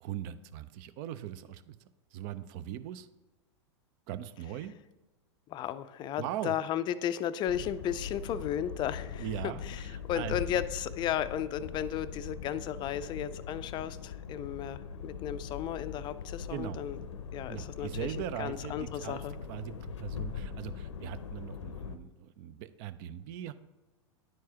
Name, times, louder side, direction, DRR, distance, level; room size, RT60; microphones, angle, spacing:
voice 1, 0.0-1.8 2.1-3.1 4.1-4.7 6.2-6.6 9.2-10.4 16.5-16.8 17.5-19.2 19.5-23.5, right 12 dB, 50° right, 13 dB, 0.5 m, -40 dB
voice 2, 5.5-9.8 10.1-17.0 17.3-18.1 18.4-19.3, left 10 dB, 30° left, 14 dB, 0.4 m, -34 dB
sound 1, 7.5-22.0, left 7 dB, 80° left, 0.6 m, -41 dB
10.5 x 4.6 x 2.9 m, 1.1 s
hypercardioid pair, 105°, 15 cm